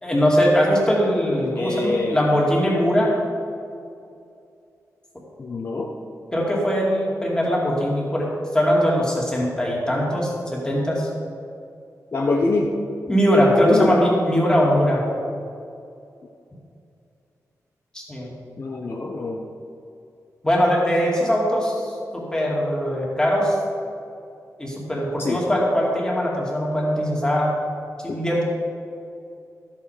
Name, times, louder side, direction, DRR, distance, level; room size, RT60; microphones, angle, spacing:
voice 1, 0.0-3.1 6.3-11.1 13.1-15.0 17.9-18.3 20.4-23.6 24.6-27.5 28.0-28.4, equal, 15° left, -4 dB, 2.5 m, -21 dB
voice 2, 1.5-2.2 5.4-5.9 12.1-12.7 13.7-14.0 18.6-19.4 25.2-25.4 28.1-28.2, left 3 dB, 40° left, -1 dB, 0.9 m, -24 dB
13.5 x 8.5 x 5.0 m, 2.5 s
wide cardioid pair, 165°, 6 cm